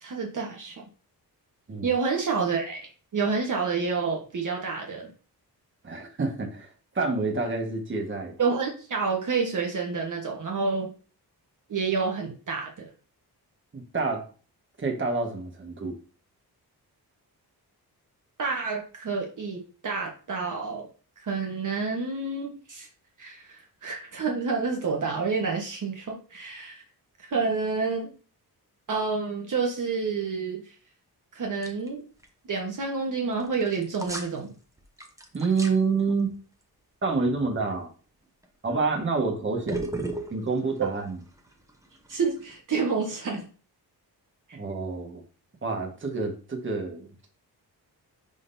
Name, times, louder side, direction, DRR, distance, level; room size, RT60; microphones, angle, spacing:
voice 1, 0.0-0.8 1.8-5.1 8.4-10.9 11.7-12.9 18.4-20.9 21.2-22.9 23.2-26.8 27.3-28.1 28.9-30.7 31.3-32.0 32.5-34.5 42.1-43.5 44.5-44.6, right 4 dB, 50° right, 0 dB, 1.3 m, -29 dB
voice 2, 5.8-6.7 6.9-8.3 13.7-14.2 14.8-15.9 35.3-36.3 37.0-37.9 38.6-39.9 40.3-41.2 44.5-45.2 45.6-47.1, right 4 dB, 30° right, 1 dB, 1.5 m, -28 dB
sound 1, 31.6-31.9 32.2-32.3 33.4-34.4 34.8-35.7 38.4-38.7 39.7-42.6, right 2 dB, 10° right, 0.9 m, -35 dB
10.5 x 3.8 x 2.7 m, 0.38 s
wide cardioid pair, 140°, 39 cm